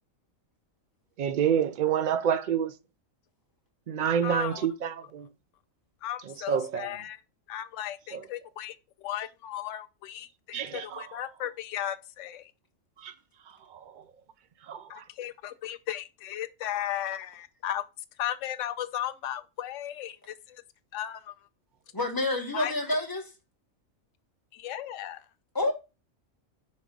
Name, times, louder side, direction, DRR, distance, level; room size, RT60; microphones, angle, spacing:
voice 1, 1.2-2.7 3.9-5.3 6.3-6.9 8.1-8.2 10.5-11.0 13.0-13.1 13.7-13.8 14.7-15.0, right 8 dB, 60° right, 0.5 m, -28 dB
voice 2, 4.2-4.7 6.0-7.2 7.5-12.5 14.9-17.8 18.2-20.6 20.9-21.3 22.5-22.7 24.5-25.2, left 11 dB, 70° left, 0.9 m, -36 dB
voice 3, 21.9-23.3 25.5-25.7, left 2 dB, 15° left, 1.2 m, -28 dB
5.5 x 3.5 x 5.1 m
omnidirectional pair, 1.4 m